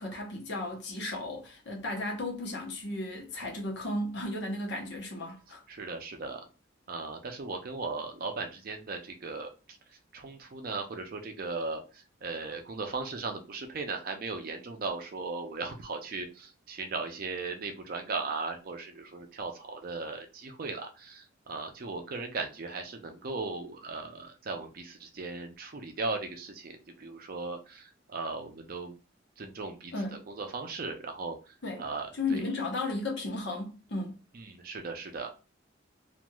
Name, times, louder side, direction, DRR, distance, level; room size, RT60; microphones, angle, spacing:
voice 1, 0.0-5.6 29.9-30.1 31.6-31.8 32.1-34.1, left 2 dB, 60° left, 0.9 m, -34 dB
voice 2, 5.7-6.5 6.9-29.0 29.4-32.4 34.3-35.3, right 3 dB, 50° right, 0.5 m, -37 dB
3.0 x 2.5 x 2.3 m
head